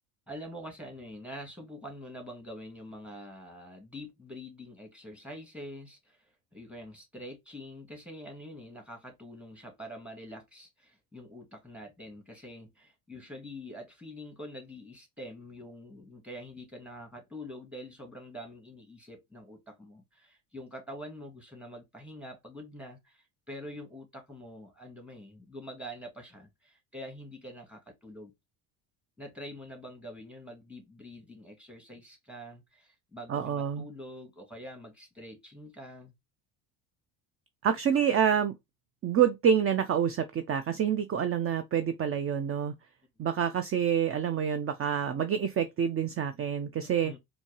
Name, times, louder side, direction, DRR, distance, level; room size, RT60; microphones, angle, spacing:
voice 1, 0.3-28.3 29.2-36.1 46.8-47.2, equal, ahead, 1.9 m, -45 dB
voice 2, 33.3-33.9 37.6-38.5 39.0-42.7 43.2-47.1, right 8 dB, 30° right, 0.5 m, -27 dB
4.4 x 2.7 x 2.9 m
supercardioid pair, 75°, 48 cm